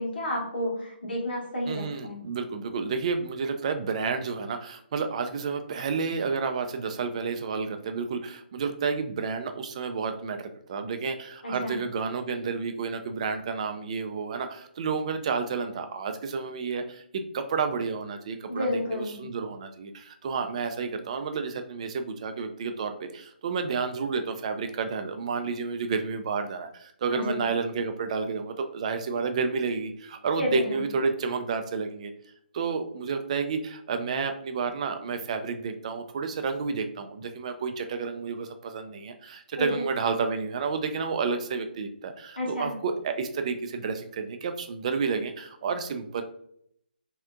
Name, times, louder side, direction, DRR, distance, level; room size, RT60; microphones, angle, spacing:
voice 1, 0.0-2.2 11.4-11.8 18.5-19.2 27.1-27.4 30.3-30.8 39.6-39.8 42.4-42.8, left 1 dB, 70° left, -2 dB, 1.3 m, -30 dB
voice 2, 1.7-32.1 32.5-46.2, right 5 dB, 40° right, 7 dB, 0.3 m, -30 dB
3.3 x 2.7 x 2.3 m, 0.69 s
figure-of-eight pair, 145°, 6 cm